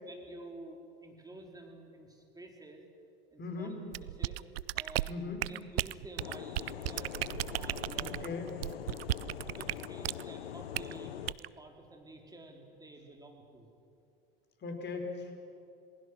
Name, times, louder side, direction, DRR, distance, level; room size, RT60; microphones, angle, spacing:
voice 1, 0.1-2.8 3.3-4.4 4.7-5.1 5.5-7.1 7.5-8.4 9.0-13.7, right 2 dB, 10° right, 1 dB, 4.2 m, -51 dB
voice 2, 3.4-3.8 5.1-5.5 8.0-8.5 14.6-15.5, left 4 dB, 35° left, 3 dB, 4.7 m, -39 dB
sound 1, 3.9-10.2 10.7-10.9 11.3-11.5, right 15 dB, 80° right, 0.5 m, -35 dB
sound 2, 6.2-11.3, left 11 dB, 85° left, 0.7 m, -43 dB
27.5 x 20.0 x 6.4 m, 2.6 s
hypercardioid pair, 80°, 29 cm